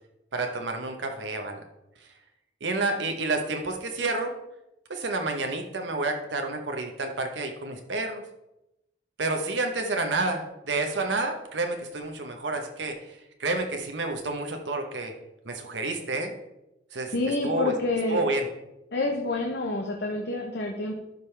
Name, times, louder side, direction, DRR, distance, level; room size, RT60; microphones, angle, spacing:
voice 1, 0.3-1.6 2.6-4.3 4.9-8.2 9.2-15.1 15.4-16.3 16.9-17.1 17.4-17.7 18.1-18.5, right 2 dB, 85° right, 4 dB, 1.0 m, -29 dB
voice 2, 17.1-18.2 18.9-20.9, left 2 dB, 65° left, 1 dB, 0.9 m, -28 dB
11.5 x 5.3 x 3.3 m, 0.89 s
head